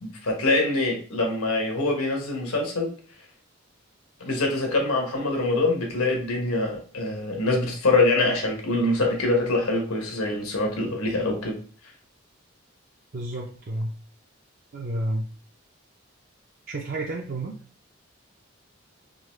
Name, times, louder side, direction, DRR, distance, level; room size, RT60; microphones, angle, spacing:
voice 1, 0.0-2.9 4.2-11.6, left 2 dB, 90° left, 1 dB, 1.2 m, -24 dB
voice 2, 13.1-13.9 14.7-15.3 16.7-17.6, right 1 dB, 40° right, -2 dB, 0.4 m, -30 dB
3.8 x 3.1 x 3.1 m, 0.40 s
head